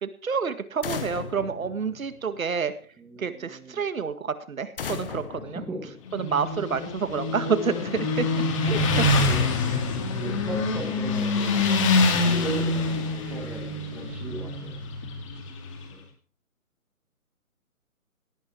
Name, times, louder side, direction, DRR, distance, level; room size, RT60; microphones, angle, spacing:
voice 1, 0.0-2.7 3.2-5.6 6.1-8.3 8.6-9.0 9.7-9.8, right 6 dB, 70° right, 11 dB, 1.9 m, -29 dB
sound 1, 0.8-2.6 4.8-6.5, left 6 dB, 40° left, 1.3 m, -37 dB
voice 2, 3.0-3.8 5.4-5.9 7.6-7.9 8.7-9.8 10.2-11.6 12.1-14.8 15.9-16.0, right 1 dB, 5° right, 0 dB, 1.2 m, -38 dB
Motorcycle, 6.1-15.8, left 3 dB, 20° left, 2.0 m, -25 dB
17.5 x 8.8 x 4.7 m, 0.42 s
hypercardioid pair, 160°, 43 cm